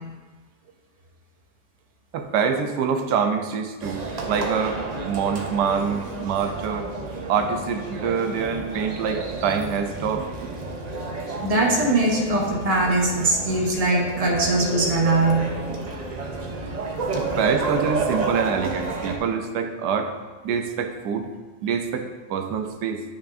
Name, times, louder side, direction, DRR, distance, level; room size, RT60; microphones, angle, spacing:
voice 1, 2.1-6.9 7.3-10.5 17.1-20.1 20.4-21.3 21.6-23.0, right 6 dB, 85° right, 6 dB, 1.2 m, -25 dB
sound 1, 3.8-19.2, right 3 dB, 50° right, 0.5 m, -31 dB
voice 2, 11.4-15.5, right 2 dB, 30° right, -1 dB, 0.9 m, -21 dB
9.3 x 5.9 x 2.6 m, 1.3 s
omnidirectional pair, 1.8 m